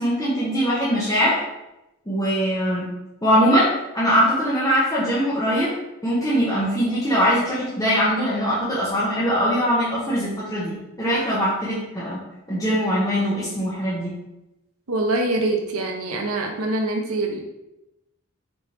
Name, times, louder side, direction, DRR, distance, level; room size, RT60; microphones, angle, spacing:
voice 1, 0.0-1.4 2.1-2.9 3.2-5.7 6.0-12.2 12.5-14.1, equal, 15° left, -9 dB, 0.8 m, -21 dB
voice 2, 14.9-17.4, right 2 dB, 80° right, 2 dB, 0.7 m, -24 dB
4.2 x 3.4 x 2.9 m, 0.92 s
head